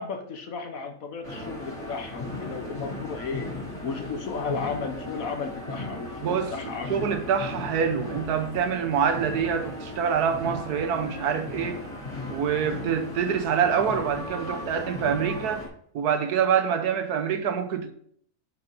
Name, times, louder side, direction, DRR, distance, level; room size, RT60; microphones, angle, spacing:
voice 1, 0.0-3.5 3.8-7.1, left 5 dB, 65° left, 1.3 m, -34 dB
sound 1, 1.2-15.7, left 2 dB, 35° left, 4.4 m, -37 dB
voice 2, 6.2-6.5 6.9-11.8 12.3-15.7 15.9-17.9, right 7 dB, 90° right, 1.4 m, -26 dB
7.8 x 5.6 x 5.4 m
omnidirectional pair, 1.6 m